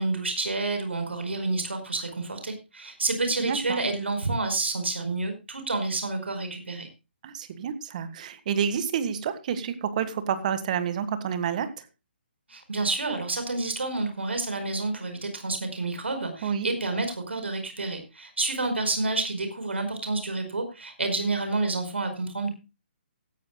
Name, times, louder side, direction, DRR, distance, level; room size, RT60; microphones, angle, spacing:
voice 1, 0.0-6.9 12.5-22.5, right 3 dB, 80° right, 7 dB, 4.9 m, -29 dB
voice 2, 3.4-3.8 7.2-11.9 16.4-16.7, right 7 dB, 40° right, 12 dB, 1.8 m, -29 dB
17.0 x 14.0 x 2.2 m, 0.27 s
figure-of-eight pair, 140°, 6 cm